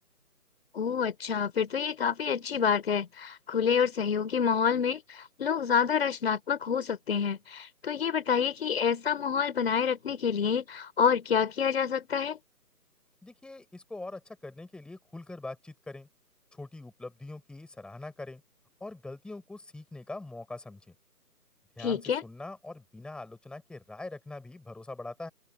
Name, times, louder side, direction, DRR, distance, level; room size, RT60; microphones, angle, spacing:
voice 1, 0.7-12.4 21.8-22.2, left 7 dB, 40° left, 4.3 m, -28 dB
voice 2, 13.2-16.1 16.5-18.4 18.8-20.9 21.8-25.3, left 2 dB, ahead, 7.3 m, -43 dB
open air
figure-of-eight pair, 155°, 48 cm